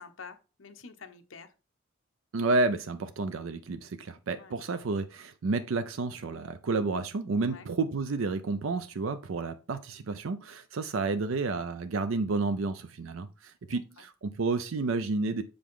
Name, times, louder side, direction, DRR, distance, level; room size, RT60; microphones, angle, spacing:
voice 1, 0.0-1.5 4.4-4.5 7.5-7.7 13.6-14.0, left 5 dB, 75° left, 0.9 m, -48 dB
voice 2, 2.3-15.4, right 3 dB, 90° right, 0.5 m, -31 dB
6.9 x 5.2 x 3.7 m
head